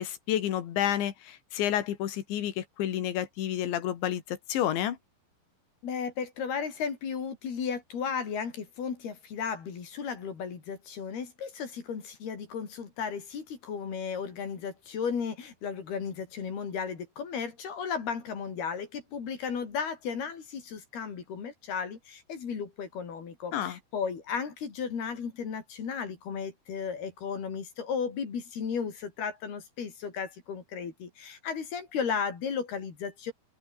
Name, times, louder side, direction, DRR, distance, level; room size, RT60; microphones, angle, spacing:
voice 1, 0.0-5.0 23.5-23.8, left 11 dB, 85° left, 4.5 m, -30 dB
voice 2, 5.8-33.3, left 6 dB, 60° left, 6.0 m, -35 dB
omnidirectional pair, 5.1 m